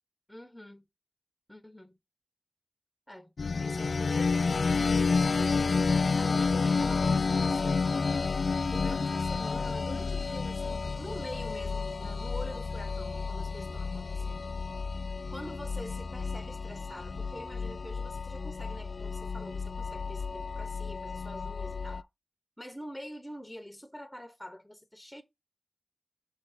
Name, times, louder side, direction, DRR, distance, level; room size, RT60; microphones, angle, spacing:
voice 1, 0.3-0.8 1.5-2.0 3.1-3.3 3.6-7.9 8.6-14.5 15.3-22.1 22.6-25.2, equal, 5° left, 1.1 m, -46 dB
sound 1, 3.4-22.0, left 4 dB, 70° left, 0.4 m, -30 dB
6.9 x 3.2 x 4.2 m
cardioid pair, 45°, 0 cm